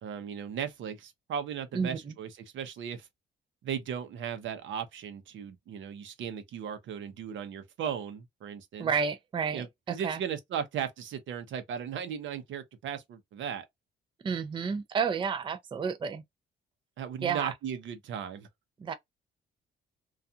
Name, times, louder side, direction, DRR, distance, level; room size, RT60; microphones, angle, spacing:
voice 1, 0.0-3.1 3.6-8.9 9.5-13.6 17.0-18.5, right 8 dB, 75° right, 0.7 m, -37 dB
voice 2, 1.7-2.1 8.8-10.2 14.2-16.2 17.2-17.5 18.8-18.9, right 6 dB, 25° right, 0.4 m, -31 dB
2.4 x 2.3 x 2.6 m
cardioid pair, 90°, 20 cm